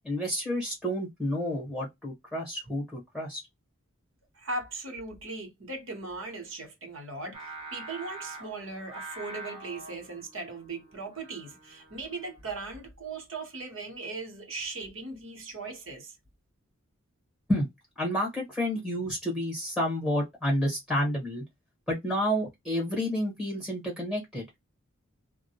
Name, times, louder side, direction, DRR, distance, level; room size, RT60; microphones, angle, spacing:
voice 1, 0.0-3.4 17.5-17.7 18.0-21.4 21.9-24.4, equal, ahead, 1.1 m, -30 dB
voice 2, 4.3-16.1, right 3 dB, 65° right, 1.0 m, -38 dB
Singing, 7.3-12.6, right 2 dB, 25° right, 0.9 m, -45 dB
2.2 x 2.1 x 2.7 m
head